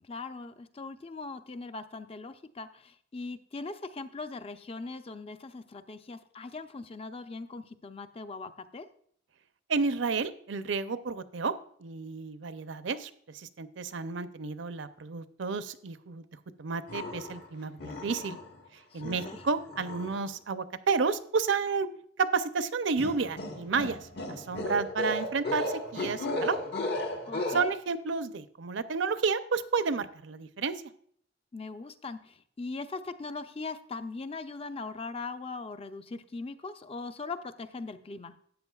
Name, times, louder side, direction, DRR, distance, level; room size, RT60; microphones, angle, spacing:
voice 1, 0.0-8.9 18.9-19.4 27.3-27.7 31.5-38.4, left 3 dB, 30° left, 10 dB, 0.5 m, -40 dB
voice 2, 9.7-11.5 11.8-16.2 16.6-18.4 18.9-21.9 22.2-24.0 24.4-26.6 27.5-30.8, right 5 dB, 70° right, 12 dB, 0.6 m, -31 dB
sound 1, 16.9-17.5 17.8-18.6 19.0-20.2 23.0-27.6, left 1 dB, 55° left, 1.3 m, -35 dB
13.0 x 8.8 x 2.3 m, 0.62 s
head